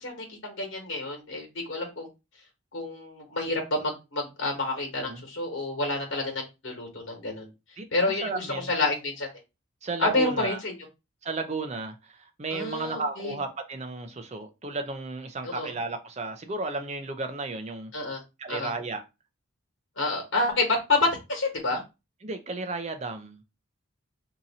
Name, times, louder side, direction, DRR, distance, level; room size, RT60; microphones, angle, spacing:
voice 1, 0.0-2.1 2.7-7.5 7.9-9.3 10.0-10.7 12.5-13.4 15.4-15.7 17.9-18.2 18.5-18.7 20.0-21.8, left 2 dB, 60° left, 1.3 m, -29 dB
voice 2, 7.8-8.7 9.8-10.6 11.2-17.9 18.4-19.0 22.2-23.4, right 3 dB, 30° right, 0.5 m, -34 dB
2.8 x 2.6 x 4.0 m
head